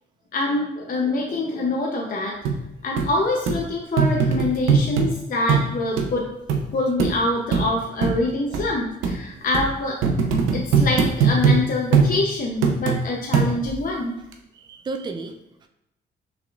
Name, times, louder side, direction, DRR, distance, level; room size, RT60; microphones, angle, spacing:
voice 1, 0.3-2.4 2.8-6.3 6.7-10.0 10.5-14.2, left 2 dB, 45° left, 0 dB, 0.7 m, -25 dB
sound 1, 2.5-2.6 3.0-3.1 3.5-3.6 4.0-5.1 5.5-5.7 6.0-6.1 6.5-6.6 7.0-7.1 7.5-7.7 8.0-8.1 8.5-8.6 9.0-9.2 9.5-9.7 10.0-11.6 11.9-12.1 12.6-13.0 13.3-13.8 14.3-14.4, right 5 dB, 90° right, 0.6 m, -19 dB
voice 2, 14.5-15.7, right 3 dB, 20° right, 6 dB, 0.4 m, -34 dB
5.8 x 3.4 x 2.4 m, 0.83 s
cardioid pair, 90°, 20 cm